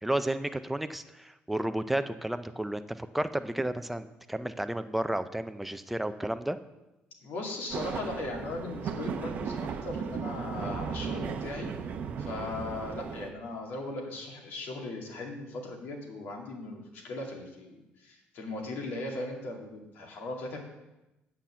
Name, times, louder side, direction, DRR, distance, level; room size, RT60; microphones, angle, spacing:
voice 1, 0.0-6.6, right 1 dB, 5° right, 10 dB, 0.4 m, -32 dB
voice 2, 7.2-11.7 12.2-20.6, left 2 dB, 70° left, 0 dB, 2.2 m, -38 dB
sound 1, 7.7-13.3, right 6 dB, 45° right, 0.7 m, -36 dB
9.1 x 5.8 x 7.3 m, 0.98 s
cardioid pair, 165°, 4 cm